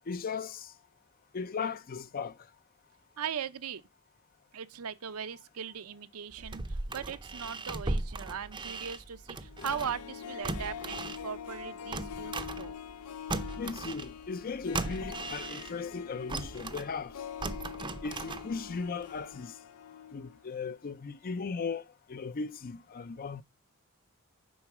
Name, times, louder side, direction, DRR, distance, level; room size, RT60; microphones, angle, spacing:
voice 1, 0.1-0.7 1.3-2.4 13.6-17.2 18.0-19.5 20.1-21.8 22.1-23.4, left 5 dB, 40° left, 0.5 m, -37 dB
voice 2, 3.2-3.8 4.5-12.8, right 7 dB, 75° right, 0.6 m, -39 dB
sound 1, 6.3-10.1 10.4-13.0 13.3-15.9 16.3-18.8 19.2-19.3, right 3 dB, 20° right, 0.6 m, -38 dB
Harp, 9.4-20.4 20.7-20.8, left 8 dB, 85° left, 0.5 m, -44 dB
9.3 x 4.0 x 5.9 m
head